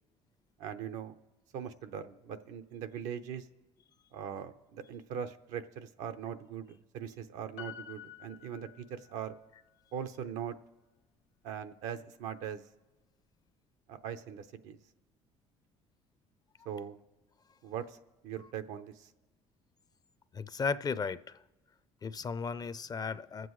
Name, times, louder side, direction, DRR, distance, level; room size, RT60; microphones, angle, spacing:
voice 1, 0.6-1.2 1.5-3.5 4.1-9.3 9.9-10.5 11.4-12.6 13.9-14.8 16.6-17.0 17.6-18.0 18.2-19.1, right 8 dB, 75° right, 0.7 m, -41 dB
Piano, 7.6-9.4 9.7-9.8, left 10 dB, 65° left, 0.8 m, -49 dB
voice 2, 20.3-21.2 22.0-23.5, left 5 dB, 30° left, 0.4 m, -35 dB
23.0 x 7.7 x 3.2 m
supercardioid pair, 85°, 13 cm